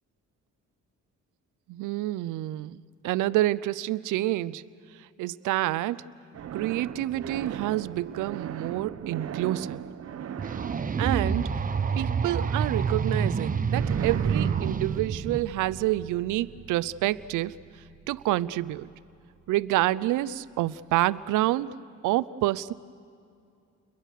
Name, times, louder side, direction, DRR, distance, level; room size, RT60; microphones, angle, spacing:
voice 1, 1.7-4.6 5.0-6.0 6.5-9.8 11.0-11.6 12.0-17.6 18.1-18.9 19.5-21.7 22.0-22.7, right 15 dB, 85° right, 18 dB, 0.6 m, -28 dB
sound 1, 6.3-12.3 13.8-19.1, right 9 dB, 55° right, 0.9 m, -37 dB
sound 2, 10.4-15.4, right 6 dB, 30° right, 0.8 m, -28 dB
30.0 x 22.5 x 6.6 m, 2.4 s
cardioid pair, 90°, 30 cm